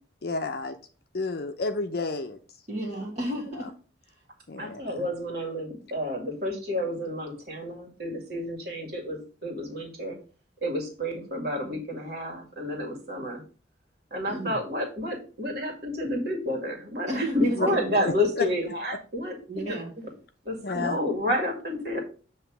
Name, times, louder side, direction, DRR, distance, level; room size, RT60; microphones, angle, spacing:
voice 1, 0.2-0.8 1.1-2.4 4.5-5.1 17.6-17.7 18.0-18.4 20.6-21.0, left 3 dB, 55° left, 7 dB, 0.6 m, -30 dB
voice 2, 2.7-3.7 14.3-14.6 17.1-18.0 19.5-19.9, right 1 dB, 35° right, -4 dB, 1.3 m, -32 dB
voice 3, 4.5-10.2 10.6-13.4 14.1-19.4 20.5-22.0, left 1 dB, 55° right, 0 dB, 2.1 m, -30 dB
7.9 x 3.0 x 5.9 m, 0.38 s
head